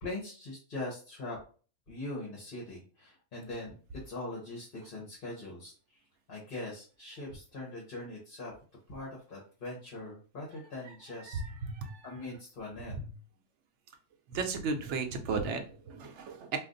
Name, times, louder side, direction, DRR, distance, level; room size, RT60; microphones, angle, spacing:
voice 1, 0.0-1.4 1.9-3.8 4.0-6.0 6.3-8.5 8.9-11.4 12.0-13.0, left 2 dB, 50° left, -4 dB, 1.0 m, -41 dB
voice 2, 11.3-12.1 12.9-13.1 14.3-16.6, right 4 dB, 70° right, 5 dB, 0.9 m, -35 dB
2.5 x 2.4 x 3.7 m, 0.39 s
omnidirectional pair, 1.3 m